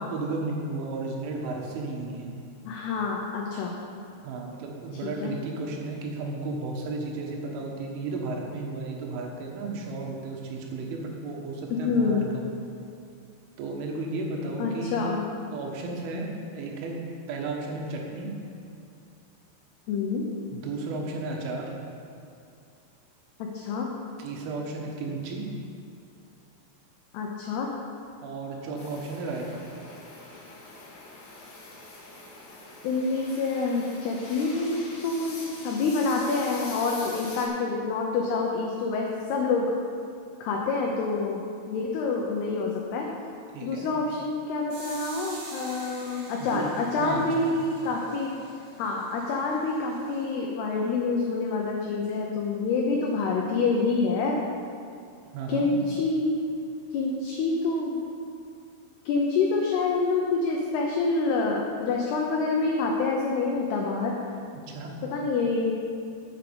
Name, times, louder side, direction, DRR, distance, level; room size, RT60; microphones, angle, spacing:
voice 1, 0.0-2.3 4.2-12.4 13.6-15.0 15.5-16.3 16.5-17.0 17.3-18.3 20.5-21.7 24.2-25.4 28.2-29.6 43.5-43.9 46.4-46.7 47.0-47.5 55.3-55.7 64.8-64.9, right 3 dB, 85° right, 0 dB, 3.9 m, -33 dB
voice 2, 2.7-3.8 5.0-5.3 11.7-12.2 14.6-15.2 19.9-20.2 23.5-23.9 27.1-27.7 32.8-39.7 40.4-41.4 41.7-43.1 43.6-48.3 48.8-54.4 55.5-56.3 56.9-58.1 59.1-64.1 65.1-65.7, left 4 dB, 75° left, -1 dB, 2.6 m, -27 dB
sound 1, 28.8-37.5, left 2 dB, 50° left, 2.4 m, -44 dB
sound 2, 44.7-50.3, right 2 dB, 50° right, 3.1 m, -46 dB
9.6 x 8.3 x 7.0 m, 2.5 s
omnidirectional pair, 5.4 m